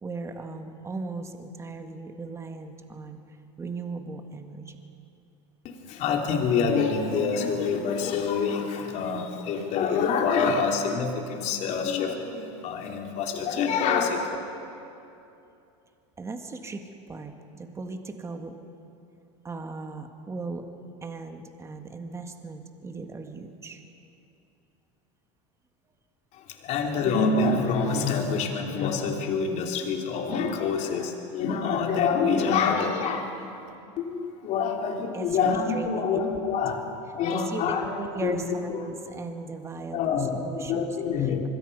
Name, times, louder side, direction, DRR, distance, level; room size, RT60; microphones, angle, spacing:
voice 1, 0.0-4.8 16.2-18.5 19.4-20.7 21.0-23.8 35.1-36.2 37.3-40.9, right 3 dB, 20° right, 6 dB, 1.8 m, -37 dB
voice 2, 5.6-14.4 26.3-38.9 39.9-41.5, left 5 dB, 50° left, 2 dB, 3.2 m, -26 dB
25.0 x 22.0 x 5.5 m, 2.7 s
supercardioid pair, 120°, 16 cm